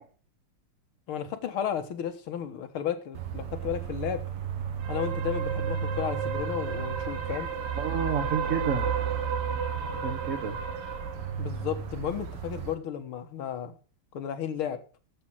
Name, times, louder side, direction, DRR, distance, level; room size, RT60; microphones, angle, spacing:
voice 1, 1.1-4.2 4.9-7.5 11.4-13.7 14.1-14.8, left 9 dB, 75° left, 9 dB, 2.2 m, -33 dB
sound 1, 3.1-12.7, right 7 dB, 90° right, 2.4 m, -32 dB
voice 2, 7.7-8.9 9.9-10.6, right 6 dB, 40° right, 2 dB, 1.4 m, -30 dB
12.0 x 7.8 x 6.1 m, 0.38 s
omnidirectional pair, 2.4 m